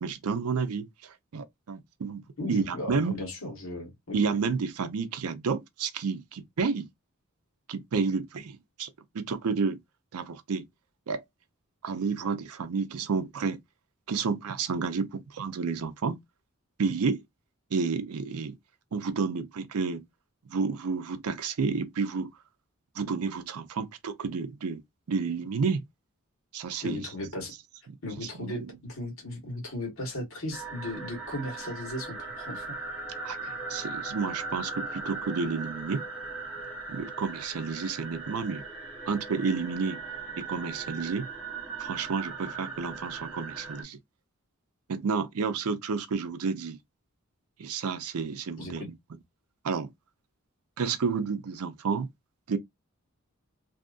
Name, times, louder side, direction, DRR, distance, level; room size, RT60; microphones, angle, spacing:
voice 1, 0.0-2.2 2.5-3.1 4.1-6.9 7.7-8.9 9.1-9.8 10.1-10.7 11.1-11.2 11.8-13.6 14.1-16.2 16.8-17.2 17.7-18.6 18.9-20.0 20.5-22.3 22.9-24.8 25.1-25.8 26.5-27.0 28.3-28.7 33.2-36.0 36.9-38.6 39.1-40.0 40.4-41.3 41.8-44.0 44.9-46.8 47.6-48.9 49.6-49.9 50.8-52.1 52.5-52.6, right 5 dB, 90° right, 0.5 m, -30 dB
voice 2, 2.4-4.2 26.8-27.5 28.0-32.8 48.6-48.9, left 1 dB, 70° left, 1.3 m, -36 dB
sound 1, 30.5-43.8, right 4 dB, 5° right, 0.9 m, -39 dB
2.7 x 2.4 x 2.3 m
head